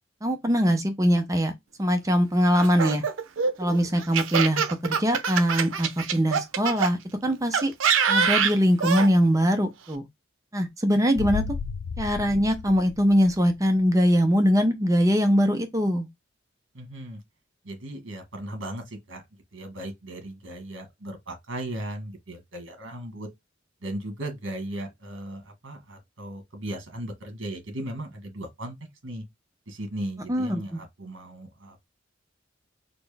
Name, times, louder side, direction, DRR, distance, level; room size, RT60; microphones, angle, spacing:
voice 1, 0.2-1.5 1.8-3.0 3.6-7.7 8.1-10.1 10.5-11.4 12.0-16.1 30.3-30.8, equal, 15° right, 0.5 m, -22 dB
Laughter, 2.5-6.9 7.5-9.1, right 6 dB, 85° right, 0.6 m, -24 dB
sound 1, 11.1-13.8 14.1-14.2, left 6 dB, 70° left, 0.3 m, -34 dB
voice 2, 16.7-17.2 17.6-19.2 19.5-23.3 23.8-28.8 29.0-29.2 29.7-31.9, right 1 dB, 70° right, 1.4 m, -37 dB
4.2 x 2.0 x 3.3 m
head